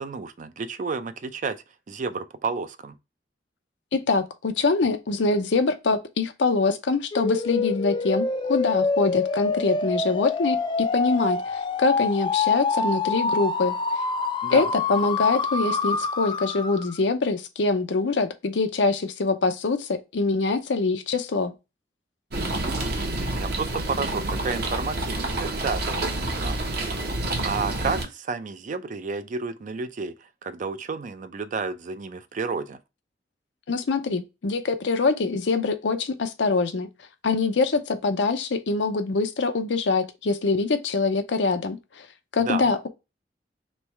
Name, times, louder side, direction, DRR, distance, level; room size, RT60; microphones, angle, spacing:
voice 1, 0.0-3.0 14.4-14.7 22.6-26.6 27.4-32.8 42.4-42.7, right 4 dB, 45° right, 0.4 m, -31 dB
voice 2, 3.9-13.8 14.5-21.5 33.7-36.9 37.2-42.1 42.3-42.9, left 3 dB, 80° left, 0.6 m, -24 dB
sound 1, 7.1-17.0, left 4 dB, 25° left, 0.4 m, -26 dB
sound 2, 22.3-28.1, right 2 dB, 60° right, 1.0 m, -28 dB
3.2 x 3.1 x 4.5 m
head